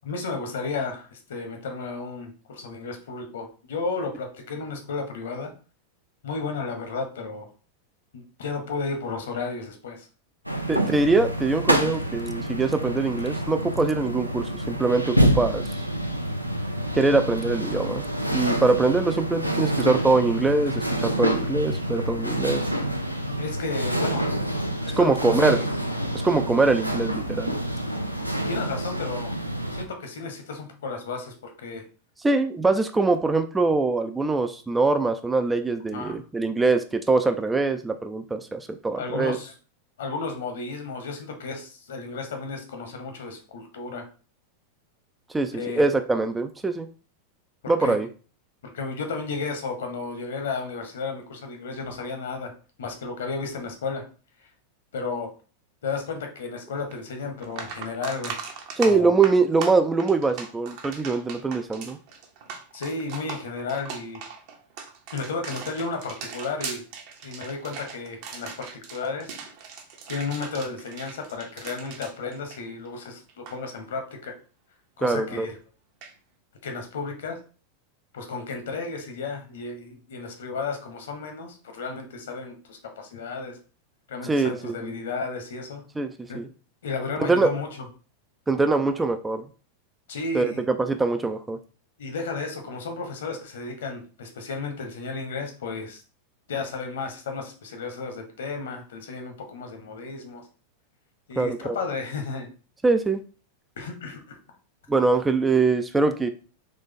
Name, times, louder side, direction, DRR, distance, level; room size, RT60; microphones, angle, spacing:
voice 1, 0.0-5.5 6.2-7.5 8.1-10.1 10.5-10.7 23.4-24.3 24.8-25.6 28.5-29.3 29.7-31.8 35.9-36.2 39.0-39.5 40.0-44.0 45.5-45.8 47.6-48.0 48.6-52.5 52.8-54.0 54.9-55.3 55.8-58.3 58.8-59.1 62.7-64.2 65.1-66.8 67.2-69.3 70.1-74.3 75.0-75.5 76.6-77.4 78.1-83.6 84.1-85.8 86.3-86.4 86.8-87.7 90.1-90.6 92.0-96.0 96.5-100.4 101.3-102.5 103.8-104.3, left 4 dB, 60° left, 4 dB, 1.1 m, -33 dB
sound 1, 10.5-29.8, right 1 dB, 90° right, 0.5 m, -27 dB
voice 2, 10.7-15.8 16.9-18.0 18.3-22.6 25.0-25.6 26.2-27.6 32.2-39.4 45.3-46.9 47.7-48.1 58.8-62.0 75.0-75.5 84.2-84.9 86.0-86.1 86.3-86.5 87.2-87.5 88.5-89.4 90.3-91.6 101.4-101.8 102.8-103.2 104.9-106.3, right 3 dB, 10° right, 7 dB, 0.4 m, -23 dB
sound 2, 56.9-57.0 57.4-73.0 73.3-73.6 76.0-76.1, right 6 dB, 45° right, 0.9 m, -39 dB
4.0 x 3.2 x 3.6 m, 0.37 s
figure-of-eight pair, 90°, 0 cm